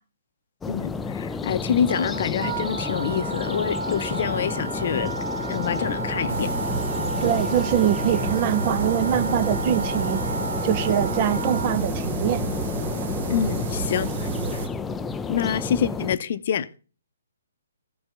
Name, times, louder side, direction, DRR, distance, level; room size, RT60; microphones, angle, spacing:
sound 1, 0.6-16.2, left 4 dB, 10° left, 0.5 m, -31 dB
voice 1, 0.7-5.1 5.5-6.5 13.3-14.6 15.3-16.7, left 8 dB, 50° left, 0.8 m, -26 dB
Wind instrument woodwind instrument, 1.9-11.8, right 3 dB, 65° right, 1.7 m, -32 dB
sound 2, 6.3-14.7, right 6 dB, 50° right, 1.4 m, -31 dB
voice 2, 7.2-10.2 10.6-12.4, right 11 dB, 35° right, 0.8 m, -23 dB
15.0 x 6.8 x 3.3 m
figure-of-eight pair, 130°, 0 cm